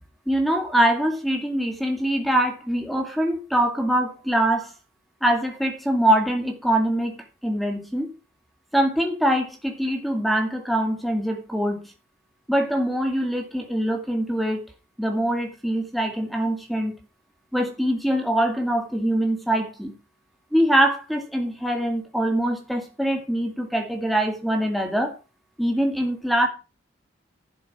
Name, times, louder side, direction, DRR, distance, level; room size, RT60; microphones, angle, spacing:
voice 1, 0.3-4.7 5.2-8.1 8.7-11.8 12.5-14.6 15.0-17.0 17.5-19.9 20.5-25.1 25.6-26.5, right 1 dB, ahead, 2.1 m, -23 dB
11.5 x 7.1 x 6.0 m
head